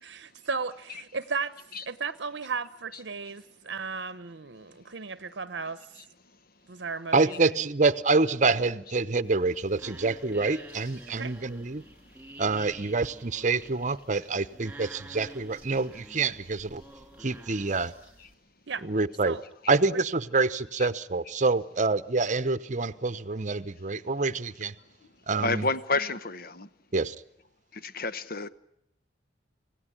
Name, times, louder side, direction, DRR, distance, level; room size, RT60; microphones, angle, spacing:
voice 1, 0.0-1.5 1.9-5.8 6.7-7.7 11.2-11.3 18.7-18.9 19.3-19.4 25.3-25.4, right 5 dB, 70° right, 0.9 m, -35 dB
voice 2, 7.1-11.8 12.4-16.8 17.2-17.9 18.8-19.4 19.7-24.7 25.3-25.7 26.9-27.2, right 3 dB, 40° right, 0.9 m, -26 dB
sound 1, 9.2-18.3, right 1 dB, 5° right, 3.9 m, -49 dB
voice 3, 25.4-26.7 27.7-28.5, left 3 dB, 50° left, 1.1 m, -30 dB
27.0 x 17.0 x 9.9 m
head